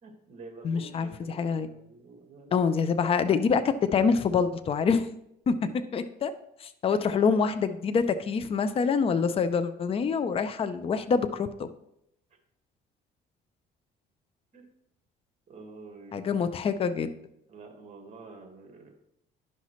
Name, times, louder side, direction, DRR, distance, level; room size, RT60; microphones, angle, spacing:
voice 1, 0.0-2.5 5.6-5.8 7.2-7.4 14.5-14.7 15.5-16.3 17.5-18.9, right 3 dB, 45° right, 4 dB, 1.8 m, -48 dB
voice 2, 0.6-1.7 2.5-5.1 5.5-5.6 5.9-6.3 6.6-11.7 16.1-17.1, left 5 dB, 35° left, 11 dB, 0.5 m, -26 dB
11.0 x 5.7 x 3.1 m, 0.78 s
cardioid pair, 110°, 17 cm